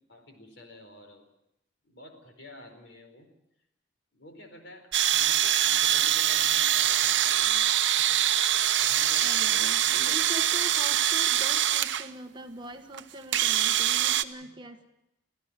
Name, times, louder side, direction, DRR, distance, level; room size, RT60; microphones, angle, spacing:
voice 1, 0.1-1.3 1.8-3.3 4.1-8.2 8.8-10.7 14.4-14.5, left 1 dB, 60° left, 5 dB, 4.5 m, -50 dB
sound 1, 4.9-12.1 12.9-13.0 13.3-14.2, right 11 dB, 65° right, 0.8 m, -24 dB
voice 2, 9.2-14.9, equal, 25° right, 6 dB, 1.2 m, -42 dB
26.0 x 15.5 x 7.4 m, 0.85 s
head